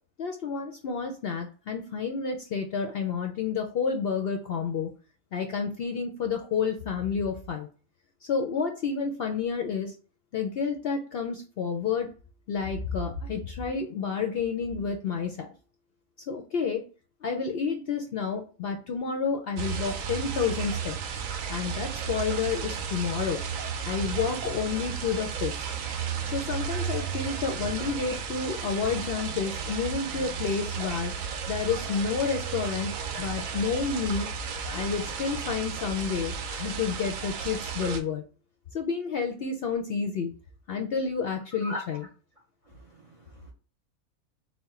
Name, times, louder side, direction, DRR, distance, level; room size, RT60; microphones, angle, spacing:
voice 1, 0.2-4.9 5.3-7.7 8.2-9.9 10.3-12.1 12.5-15.5 16.3-16.8 17.2-21.0 21.5-23.4 23.8-25.7 26.3-31.1 31.5-32.9 33.2-34.3 34.7-38.2 38.7-40.3 40.7-42.0, left 6 dB, 65° left, 0.6 m, -30 dB
sound 1, 19.6-38.0, right 6 dB, 80° right, 1.0 m, -33 dB
voice 2, 42.7-43.5, left 1 dB, 40° right, 0.5 m, -40 dB
4.2 x 2.1 x 4.2 m
omnidirectional pair, 1.4 m